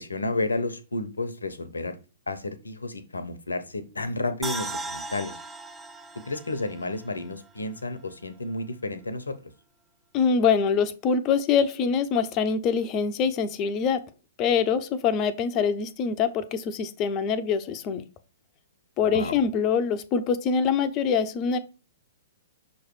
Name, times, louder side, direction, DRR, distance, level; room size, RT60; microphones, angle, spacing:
voice 1, 0.0-2.0 2.3-5.3 6.2-9.4 19.0-19.4, left 2 dB, 80° left, 10 dB, 0.9 m, -31 dB
sound 1, 4.4-7.6 8.0-8.1, right 3 dB, 10° right, 0.6 m, -37 dB
voice 2, 10.1-14.0 14.4-18.0 19.0-21.6, left 6 dB, 30° left, 11 dB, 0.6 m, -24 dB
6.4 x 3.1 x 4.7 m, 0.32 s
figure-of-eight pair, 115°, 0 cm